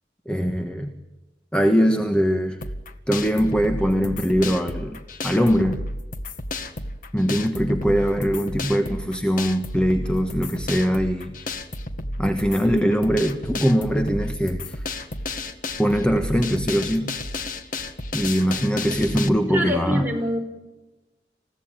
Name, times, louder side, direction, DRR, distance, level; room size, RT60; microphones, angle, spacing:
voice 1, 0.2-0.9 1.5-2.6 3.1-5.8 7.1-11.5 12.2-14.8 15.8-17.1 18.1-20.1, equal, 5° left, 6 dB, 1.4 m, -22 dB
sound 1, 2.6-19.3, left 2 dB, 50° left, 1.8 m, -32 dB
voice 2, 19.5-20.4, equal, 10° right, 0 dB, 5.5 m, -25 dB
29.0 x 16.5 x 9.0 m, 1.1 s
head